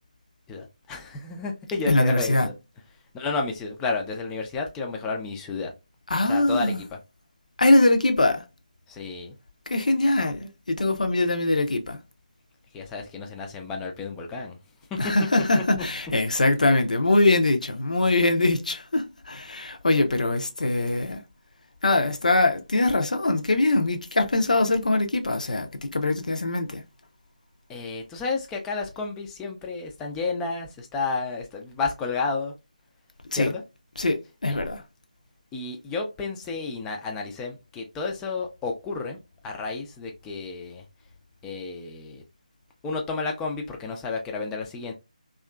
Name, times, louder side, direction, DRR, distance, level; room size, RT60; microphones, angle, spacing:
voice 1, 0.5-2.5 3.1-5.7 6.3-7.0 8.9-9.3 12.7-14.6 15.5-15.6 27.7-32.5 33.3-33.6 34.5-34.6 35.5-40.8 41.4-42.2 42.8-44.9, left 4 dB, 10° left, 0.4 m, -31 dB
voice 2, 1.9-2.5 6.1-6.8 7.6-8.4 9.7-12.0 15.0-21.2 21.8-26.8 33.3-33.5 34.0-34.8, left 2 dB, 65° left, 0.6 m, -22 dB
2.8 x 2.4 x 2.2 m
figure-of-eight pair, 155°, 4 cm